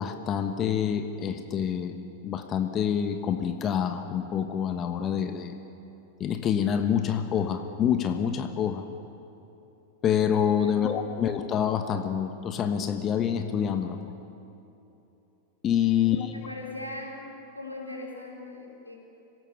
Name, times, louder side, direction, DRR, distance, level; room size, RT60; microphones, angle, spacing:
voice 1, 0.0-1.9 2.2-5.6 6.2-8.9 10.0-14.0 15.6-16.3, left 8 dB, 30° left, 7 dB, 1.3 m, -27 dB
voice 2, 15.8-17.1 17.5-18.9, left 2 dB, 90° left, -3 dB, 4.6 m, -40 dB
26.0 x 17.5 x 7.2 m, 2.9 s
figure-of-eight pair, 90°, 0 cm